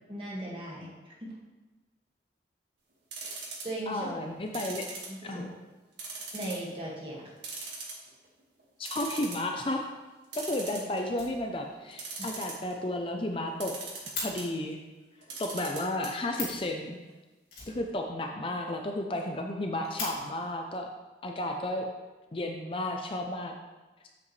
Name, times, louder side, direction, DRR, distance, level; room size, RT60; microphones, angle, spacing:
voice 1, 0.1-1.3 3.6-4.2 5.1-5.4 6.3-7.3 12.2-12.3, right 1 dB, 30° right, -5 dB, 1.9 m, -38 dB
sound 1, 3.1-3.8 4.5-5.5 6.0-6.7 7.0-7.1 7.4-8.3 8.6-8.7 8.9-9.5 10.3-11.2 11.9-12.7 13.6-14.5 15.2-16.1 16.4-16.5 16.7-16.8, right 4 dB, 85° right, 1.8 m, -40 dB
voice 2, 3.9-5.5 8.8-9.9 10.3-13.8 14.2-14.8 15.4-17.0 17.7-20.9 21.2-21.9 22.3-23.5, left 1 dB, 30° left, 3 dB, 0.5 m, -33 dB
Fire, 11.1-11.9 12.2-12.3 12.6-12.7 13.0-13.1 13.3-14.3 16.0-16.1 16.3-16.7 17.5-18.4 18.7-18.8 19.1-19.2 19.6-20.1 21.1-21.2 21.9-22.5, left 3 dB, 55° left, 2.7 m, -40 dB
8.3 x 7.3 x 3.2 m, 1.2 s
head